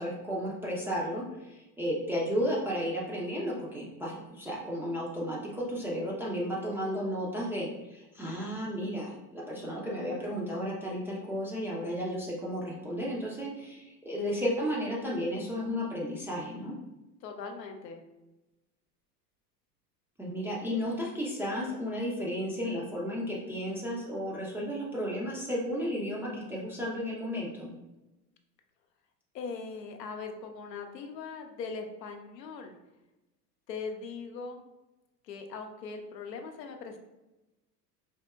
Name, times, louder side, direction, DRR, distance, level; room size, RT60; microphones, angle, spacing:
voice 1, 0.0-16.7 20.2-27.7, equal, 5° right, -5 dB, 0.4 m, -33 dB
voice 2, 17.2-18.0 29.3-32.7 33.7-34.6 35.2-37.0, left 4 dB, 85° left, 4 dB, 0.6 m, -40 dB
4.2 x 2.8 x 2.2 m, 1.0 s
hypercardioid pair, 80°, 49 cm